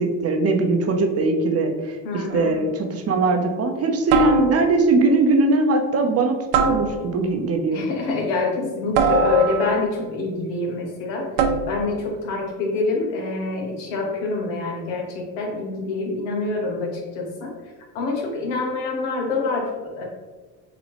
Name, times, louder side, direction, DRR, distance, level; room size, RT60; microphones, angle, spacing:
voice 1, 0.0-7.8, right 3 dB, 35° right, 4 dB, 0.6 m, -20 dB
voice 2, 2.0-2.5 7.7-11.3 11.7-17.5 17.9-20.0, left 3 dB, 80° left, 0 dB, 1.2 m, -26 dB
sound 1, 2.3-2.6 4.1-4.9 6.5-7.4 8.9-9.9 11.4-12.0, right 5 dB, 85° right, 0.6 m, -23 dB
3.8 x 2.9 x 3.3 m, 1.3 s
supercardioid pair, 85°, 45 cm